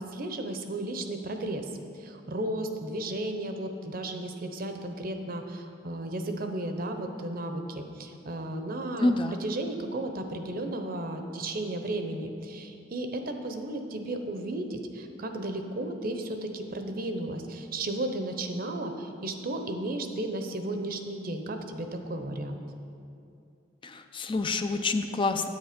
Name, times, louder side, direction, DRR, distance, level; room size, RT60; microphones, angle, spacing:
voice 1, 0.0-9.1 9.4-22.6, right 1 dB, 50° right, 6 dB, 0.8 m, -34 dB
voice 2, 9.0-9.4 23.8-25.5, left 2 dB, 25° left, 7 dB, 0.4 m, -27 dB
9.5 x 8.5 x 5.1 m, 2.5 s
head